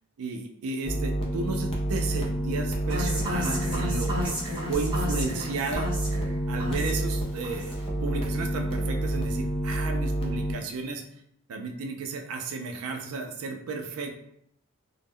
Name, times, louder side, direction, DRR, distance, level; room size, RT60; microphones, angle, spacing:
voice 1, 0.2-4.4 4.7-6.1 6.5-11.0 11.5-14.1, right 4 dB, 90° right, 3 dB, 0.4 m, -33 dB
sound 1, 0.8-10.5, right 1 dB, 25° left, 0.4 m, -29 dB
sound 2, 2.9-7.2 7.4-7.9, equal, 20° right, 0.7 m, -33 dB
2.1 x 2.0 x 3.5 m, 0.72 s
head